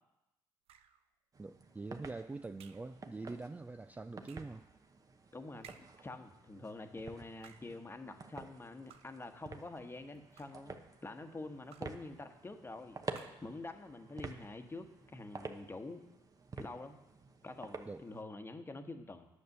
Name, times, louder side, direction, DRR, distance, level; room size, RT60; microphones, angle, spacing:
sound 1, 0.7-1.1 2.6-3.0 4.2-4.6 5.6-6.1 7.3-7.8 8.9-9.3 10.1-10.7 11.7-12.1 13.1-13.6, right 8 dB, 65° right, 0.6 m, -59 dB
sound 2, 1.3-18.2, right 4 dB, 35° right, 1.0 m, -50 dB
voice 1, 1.4-4.6 17.9-18.0, right 3 dB, 15° right, 10 dB, 0.3 m, -44 dB
voice 2, 5.3-16.0 16.6-17.0 17.4-19.3, left 2 dB, 20° left, 7 dB, 1.2 m, -47 dB
9.6 x 6.5 x 6.7 m, 0.94 s
hypercardioid pair, 60°, 11 cm